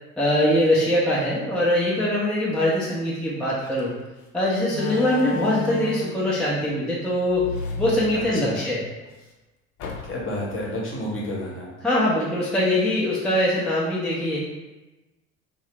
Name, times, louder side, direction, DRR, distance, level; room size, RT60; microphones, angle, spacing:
voice 1, 0.2-3.9 4.3-7.5 7.8-8.8 11.8-14.4, left 1 dB, ahead, -7 dB, 0.6 m, -22 dB
Slam, 3.6-3.8 4.7-6.2 7.3-8.7 9.1-9.2 9.8-10.4, left 5 dB, 45° left, 0.6 m, -32 dB
voice 2, 8.1-8.6 10.0-11.7, left 1 dB, 30° left, -3 dB, 0.9 m, -30 dB
2.6 x 2.0 x 3.4 m, 1.1 s
figure-of-eight pair, 60°, 40 cm